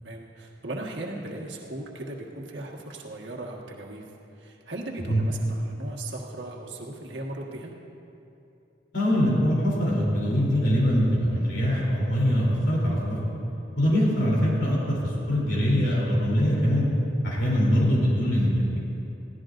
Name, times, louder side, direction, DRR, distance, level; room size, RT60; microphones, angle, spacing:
voice 1, 0.0-4.1 4.3-7.7, right 2 dB, 75° right, -1 dB, 1.6 m, -37 dB
voice 2, 8.9-13.2 13.7-16.9 17.2-18.8, equal, 75° left, -4 dB, 3.3 m, -23 dB
21.5 x 16.0 x 2.6 m, 2.9 s
head